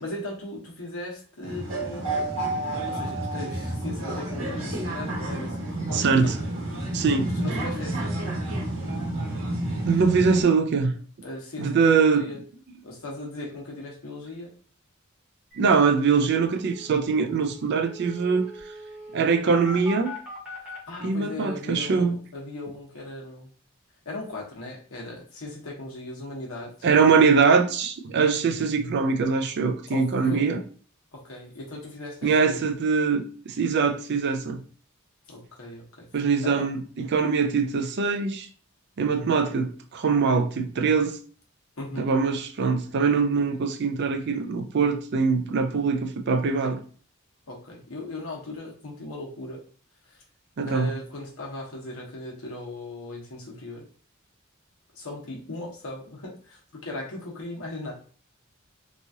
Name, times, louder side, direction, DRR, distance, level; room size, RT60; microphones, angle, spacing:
voice 1, 0.0-2.1 2.8-6.3 6.7-8.2 11.2-12.4 12.8-14.5 20.6-23.5 24.0-26.7 29.9-30.5 31.1-32.6 35.3-36.7 41.8-42.2 47.5-49.6 50.0-50.2 50.6-53.9 54.9-57.9, left 2 dB, 90° left, 1.0 m, -38 dB
sound 1, 1.4-10.4, right 1 dB, 70° right, 1.2 m, -30 dB
voice 2, 5.9-6.3 6.9-7.3 9.6-10.9 11.6-12.2 15.6-18.5 19.1-20.1 21.0-22.2 26.8-30.6 32.2-34.6 36.1-38.5 39.0-41.2 42.0-46.8 50.6-50.9, right 5 dB, 55° right, 0.4 m, -23 dB
sound 2, 15.5-15.6 15.8-15.9 16.2-20.8, left 2 dB, 5° right, 1.0 m, -41 dB
3.0 x 2.4 x 2.7 m
head